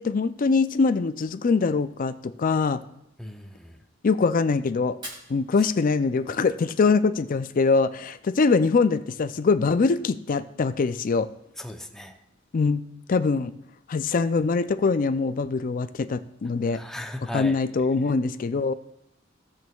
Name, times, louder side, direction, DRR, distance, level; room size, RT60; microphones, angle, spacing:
voice 1, 0.0-2.8 4.0-5.0 5.3-11.3 12.5-13.5 13.9-16.8 17.3-18.7, left 4 dB, 45° left, 11 dB, 0.4 m, -23 dB
voice 2, 3.2-3.8 11.6-12.2 16.7-17.6, left 1 dB, ahead, 5 dB, 0.6 m, -37 dB
Fire, 4.9-6.9, right 1 dB, 25° right, 2.3 m, -45 dB
17.0 x 6.1 x 2.3 m, 0.79 s
head